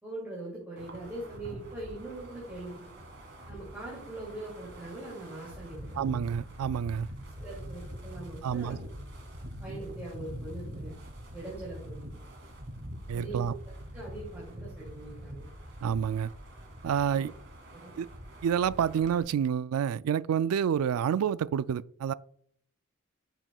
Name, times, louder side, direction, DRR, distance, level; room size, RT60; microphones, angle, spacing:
voice 1, 0.0-3.0 3.5-6.3 7.2-8.8 9.6-11.0 11.3-12.2 13.1-13.4 13.9-15.5 17.1-17.3 17.7-17.9, right 2 dB, 10° right, 2.4 m, -42 dB
Wind, 0.8-19.2, equal, 50° right, 2.3 m, -44 dB
voice 2, 6.0-7.1 8.4-8.8 13.1-13.5 15.8-16.3 16.8-17.3 18.0-18.1 18.4-22.1, right 8 dB, 85° right, 0.3 m, -28 dB
12.0 x 6.0 x 2.3 m
head